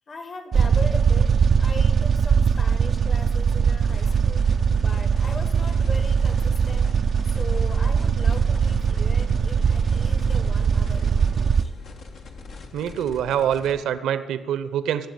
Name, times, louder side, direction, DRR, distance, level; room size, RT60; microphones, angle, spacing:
voice 1, 0.1-4.5 4.8-6.9 7.2-11.7, left 3 dB, 40° left, 7 dB, 1.9 m, -39 dB
sound 1, 0.5-11.6, right 6 dB, 50° right, 0.5 m, -21 dB
sound 2, 3.8-13.8, left 4 dB, 65° left, 1.7 m, -42 dB
voice 2, 12.7-15.1, right 9 dB, 70° right, 12 dB, 0.9 m, -25 dB
17.5 x 7.8 x 9.0 m, 1.3 s
hypercardioid pair, 50°, 0 cm